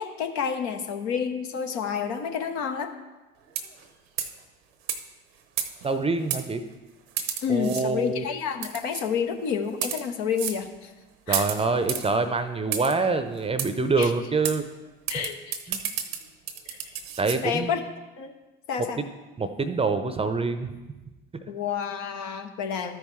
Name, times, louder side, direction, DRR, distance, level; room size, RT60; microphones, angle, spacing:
voice 1, 0.0-2.9 7.4-10.9 11.3-11.5 14.0-14.1 15.1-15.4 16.7-16.9 17.4-17.8 18.2-18.3 18.7-19.0 21.5-23.0, left 7 dB, 65° left, 5 dB, 1.0 m, -29 dB
sound 1, 3.5-3.8 4.2-4.4 4.9-5.0 5.6-5.9 6.3-6.4 7.2-7.8 8.6-9.0 9.7-10.0 10.4-10.6 11.3-12.1 12.7-12.9 13.6-13.7 14.0-14.1 14.4-14.6 15.1-17.4, right 9 dB, 75° right, 0.8 m, -31 dB
voice 2, 5.8-6.6 7.5-8.2 11.3-14.6 15.1-15.3 15.7-15.8 17.2-17.7 19.0-19.1 19.4-20.7, right 4 dB, 20° right, 9 dB, 0.7 m, -26 dB
13.0 x 5.4 x 3.2 m, 1.1 s
hypercardioid pair, 65°, 30 cm